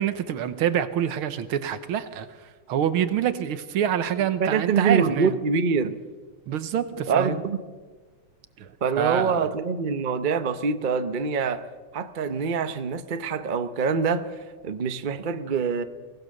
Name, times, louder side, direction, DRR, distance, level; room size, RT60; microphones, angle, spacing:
voice 1, 0.0-5.3 6.5-7.4 8.6-9.5, right 9 dB, 80° right, 12 dB, 1.9 m, -26 dB
voice 2, 4.4-6.0 7.1-7.6 8.8-11.7 11.9-15.8, right 5 dB, 50° right, 10 dB, 0.5 m, -25 dB
23.0 x 18.0 x 6.6 m, 1.4 s
omnidirectional pair, 2.3 m